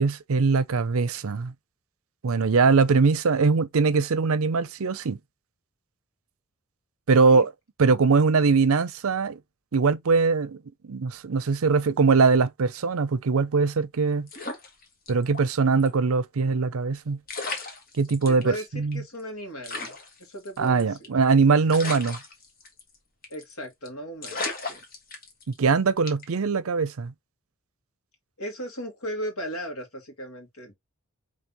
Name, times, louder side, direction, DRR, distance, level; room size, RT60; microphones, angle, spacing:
voice 1, 0.0-1.5 2.2-5.2 7.1-7.5 7.8-9.4 9.7-10.6 10.8-14.3 15.1-17.2 18.0-19.0 20.6-22.2 25.5-27.1, right 4 dB, 70° right, 0.5 m, -22 dB
sound 1, 14.3-15.5 15.8-15.9 16.9-17.0 17.3-18.4 18.9-19.0 19.2-19.3 19.6-21.2 21.7-23.0 23.2-23.5 23.9-24.0 24.2-25.6 26.1-26.4, left 3 dB, 40° left, 1.4 m, -35 dB
voice 2, 18.3-19.9 20.2-21.1 23.3-24.8 28.4-30.7, equal, 75° left, 1.9 m, -36 dB
5.4 x 3.3 x 2.9 m
head